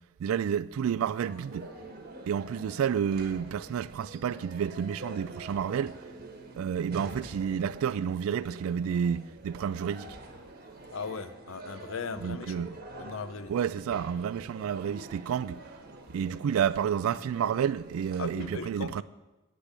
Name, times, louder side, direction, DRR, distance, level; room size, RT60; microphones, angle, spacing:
voice 1, 0.2-1.7 2.3-6.0 6.6-10.1 12.2-12.7 13.5-15.6 16.1-19.0, right 8 dB, 85° right, 0.3 m, -30 dB
sound 1, 1.1-18.5, right 2 dB, 45° right, 1.3 m, -46 dB
voice 2, 10.9-13.5 18.2-19.0, left 4 dB, 75° left, 0.6 m, -38 dB
9.7 x 6.8 x 7.4 m
head